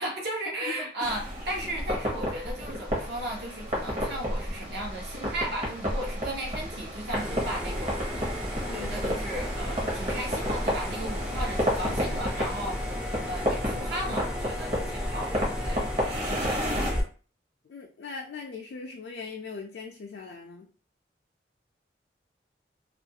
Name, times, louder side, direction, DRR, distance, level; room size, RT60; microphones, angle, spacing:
voice 1, 0.0-8.3 8.6-13.0 13.2-15.9, right 1 dB, 65° right, -2 dB, 0.8 m, -35 dB
voice 2, 0.7-1.1 8.6-9.0 16.4-17.1 17.6-20.7, left 4 dB, 65° left, 1 dB, 0.3 m, -41 dB
sound 1, 1.0-16.9, equal, 40° right, 0.9 m, -32 dB
sound 2, 7.1-17.0, left 1 dB, 5° right, 0.4 m, -34 dB
2.4 x 2.2 x 2.7 m, 0.39 s
head